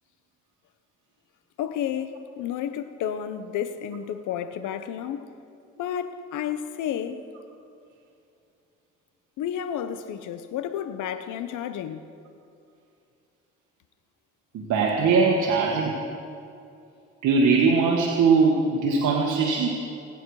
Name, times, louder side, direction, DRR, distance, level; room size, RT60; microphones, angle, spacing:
voice 1, 1.6-5.3 5.8-7.2 9.4-12.0, left 9 dB, 85° left, 1.1 m, -31 dB
voice 2, 14.5-16.0 17.2-19.8, right 4 dB, 80° right, 1.8 m, -21 dB
28.5 x 10.0 x 4.9 m
cardioid pair, 90°, 30 cm